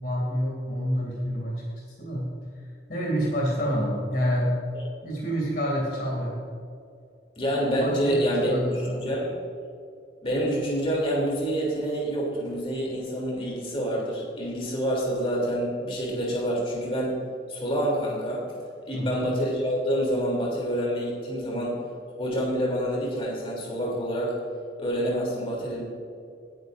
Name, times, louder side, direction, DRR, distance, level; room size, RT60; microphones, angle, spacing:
voice 1, 0.0-1.6 2.0-2.4 2.9-4.6 5.0-6.4 7.8-9.1 18.9-19.2, equal, 50° left, -3 dB, 2.6 m, -28 dB
voice 2, 7.4-9.3 10.2-17.2 17.5-18.4 18.9-21.8 22.2-24.4 24.8-25.8, equal, 30° left, -3 dB, 3.1 m, -27 dB
18.0 x 10.5 x 2.6 m, 2.4 s
head